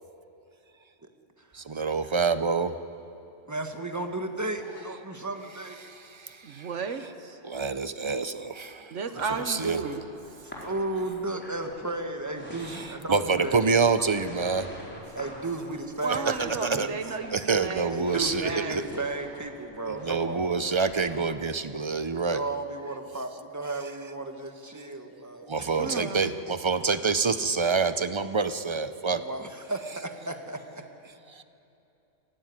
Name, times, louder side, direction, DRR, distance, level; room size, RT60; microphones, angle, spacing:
voice 1, 1.5-2.7 5.8-6.7 7.4-8.9 9.5-9.8 13.1-14.7 16.3-16.4 16.6-16.9 17.3-18.8 19.9-22.4 25.5-29.2, right 4 dB, 30° right, 11 dB, 0.5 m, -27 dB
voice 2, 3.5-5.8 9.1-9.4 10.6-13.6 14.0-14.2 15.1-17.0 17.9-20.9 22.2-26.0 29.1-30.8, right 2 dB, 15° right, 5 dB, 1.5 m, -34 dB
voice 3, 6.4-7.4 8.9-10.0 16.0-18.8 25.8-26.3, right 5 dB, 75° right, 8 dB, 1.4 m, -33 dB
sound 1, 9.4-21.3, equal, 10° left, 4.4 m, -45 dB
24.0 x 16.0 x 9.6 m, 2.8 s
omnidirectional pair, 1.3 m